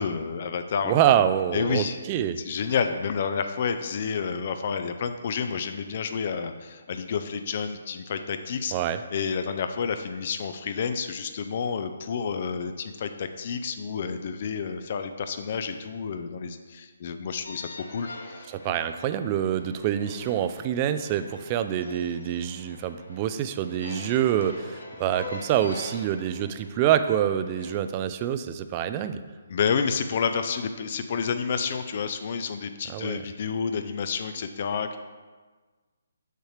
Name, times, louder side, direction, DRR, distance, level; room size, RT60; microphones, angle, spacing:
voice 1, 0.0-1.0 1.5-2.0 2.4-8.7 9.1-18.5 29.5-35.0, left 6 dB, 45° left, 8 dB, 0.5 m, -29 dB
voice 2, 0.8-2.4 8.7-9.0 18.5-29.2 32.9-33.2, right 10 dB, 30° right, 10 dB, 0.4 m, -26 dB
sound 1, 17.5-27.8, left 2 dB, 80° left, 1.1 m, -44 dB
6.6 x 6.4 x 3.2 m, 1.4 s
figure-of-eight pair, 145°, 0 cm